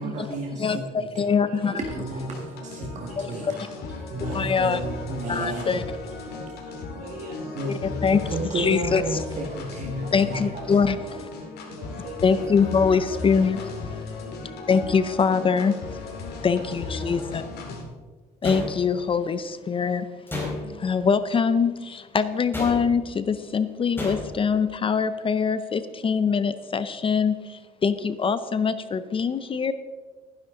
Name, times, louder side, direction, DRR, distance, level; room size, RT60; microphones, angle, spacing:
voice 1, 0.0-1.3 1.7-3.6 4.1-5.8 6.3-6.4 7.5-10.8, right 2 dB, 45° right, 1 dB, 1.7 m, -32 dB
voice 2, 0.6-1.8 3.2-3.7 4.3-4.8 5.3-5.8 7.8-8.2 8.5-9.2 10.1-11.2 12.2-13.7 14.7-17.4 18.4-20.1 20.7-29.7, left 6 dB, 30° left, 13 dB, 0.6 m, -23 dB
voice 3, 1.4-1.8 2.1-2.3 2.5-3.8 4.0-4.7 5.7-5.8 6.2-7.7 9.8-10.7 10.9-11.3 11.6-12.5 13.1-13.4 13.9-14.6 16.5-17.3, right 3 dB, 60° right, 1 dB, 3.8 m, -43 dB
sound 1, 1.8-17.8, left 4 dB, 70° left, 2.7 m, -36 dB
sound 2, 18.4-19.2 20.3-20.9 22.5-23.1 24.0-24.5, left 2 dB, 15° left, 4.2 m, -32 dB
14.5 x 10.5 x 3.8 m, 1.4 s
cardioid pair, 110°, 17 cm